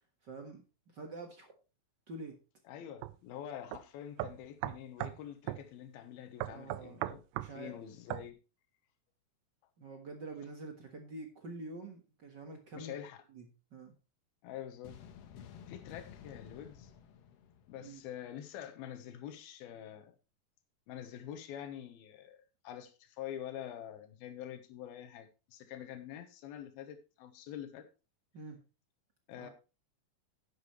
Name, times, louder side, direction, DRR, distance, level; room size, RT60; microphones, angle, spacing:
voice 1, 0.2-0.6 0.9-1.5 2.1-2.4 6.5-7.8 9.8-12.9 13.3-13.9 17.8-18.0 28.3-28.6 29.4-29.5, right 2 dB, 55° right, 1.2 m, -47 dB
voice 2, 2.7-7.2 7.5-8.4 12.7-13.2 14.4-15.0 15.7-16.9 17.7-20.2 20.9-27.8 29.3-29.5, left 10 dB, 90° left, 3.0 m, -46 dB
sound 1, 3.0-3.2 3.7-3.8 4.2-5.2 5.5-5.6 6.4-7.5 8.1-8.3, right 15 dB, 80° right, 2.0 m, -37 dB
sound 2, 14.8-18.3, left 8 dB, 70° left, 1.6 m, -53 dB
10.5 x 10.0 x 3.1 m
omnidirectional pair, 4.2 m